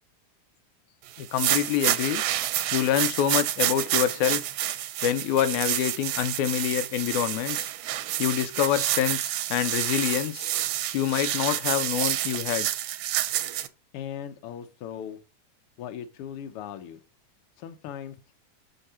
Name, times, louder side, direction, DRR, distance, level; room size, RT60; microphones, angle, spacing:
voice 1, 1.2-2.2 2.7-4.4 5.0-7.7 8.2-10.5 10.9-12.7, left 11 dB, 80° left, 2.0 m, -26 dB
sound 1, 1.2-13.7, right 13 dB, 80° right, 1.7 m, -28 dB
voice 2, 13.9-15.2 15.8-17.0 17.6-18.1, left 9 dB, 65° left, 1.5 m, -38 dB
6.5 x 5.7 x 4.2 m
omnidirectional pair, 3.4 m